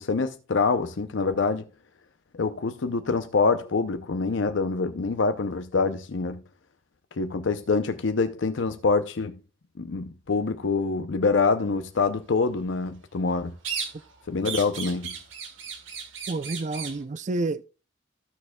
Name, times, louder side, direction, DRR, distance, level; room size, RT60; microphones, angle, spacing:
voice 1, 0.0-1.6 2.3-6.4 7.2-9.4 9.8-13.5 14.3-15.1, left 4 dB, 70° left, 0.6 m, -25 dB
sound 1, 13.6-14.2 14.4-17.0, right 6 dB, 80° right, 2.0 m, -35 dB
voice 2, 16.3-17.7, right 2 dB, 40° right, 0.4 m, -29 dB
15.0 x 6.5 x 2.3 m
head